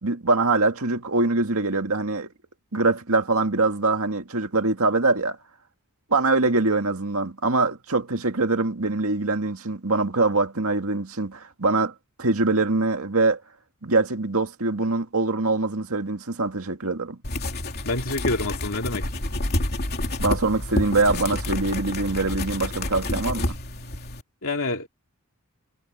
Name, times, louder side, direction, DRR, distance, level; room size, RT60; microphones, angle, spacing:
voice 1, 0.0-2.3 2.7-5.4 6.1-13.4 13.8-17.2 20.2-23.6, right 3 dB, 70° right, 2.1 m, -23 dB
sound 1, 17.2-24.2, left 1 dB, 45° left, 3.1 m, -29 dB
voice 2, 17.8-19.1 24.4-24.9, left 2 dB, 65° left, 2.8 m, -27 dB
head